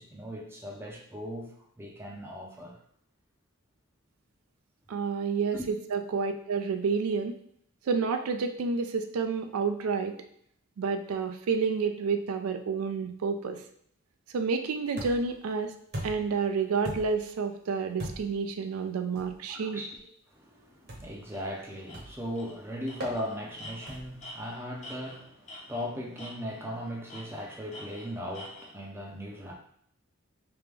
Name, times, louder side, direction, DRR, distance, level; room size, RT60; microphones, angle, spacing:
voice 1, 0.0-2.8 5.5-5.7 19.5-20.1 20.3-29.5, equal, 10° right, -1 dB, 0.5 m, -38 dB
voice 2, 4.9-7.4 7.8-10.1 10.8-13.6 14.3-15.7 16.0-19.8, right 5 dB, 85° right, 7 dB, 0.4 m, -29 dB
sound 1, 15.0-15.4 15.9-16.4 16.8-17.3 18.0-18.4 19.2-19.4 20.9-21.2 21.9-22.3 23.0-23.2 23.9-24.2, equal, 50° right, 0.9 m, -39 dB
Tools, 21.3-21.5 21.9-22.0 22.4-22.6 22.9-25.9 26.2-26.7 27.1-28.7, left 1 dB, 35° left, 0.9 m, -46 dB
3.4 x 2.8 x 3.4 m, 0.68 s
head